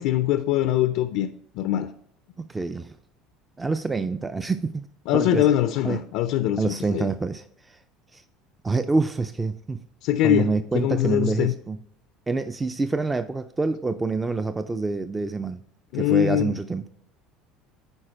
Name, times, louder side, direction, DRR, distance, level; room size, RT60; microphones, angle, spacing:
voice 1, 0.0-1.9 5.1-7.1 10.0-11.5 15.9-16.6, left 12 dB, 70° left, 0.4 m, -23 dB
voice 2, 2.4-3.0 3.6-4.9 5.1-5.5 5.8-6.0 6.6-7.8 8.1-8.2 8.6-9.8 10.2-11.8 12.3-15.6 16.0-16.8, right 3 dB, 15° right, 0.4 m, -26 dB
9.9 x 4.0 x 4.5 m
supercardioid pair, 110°, 0 cm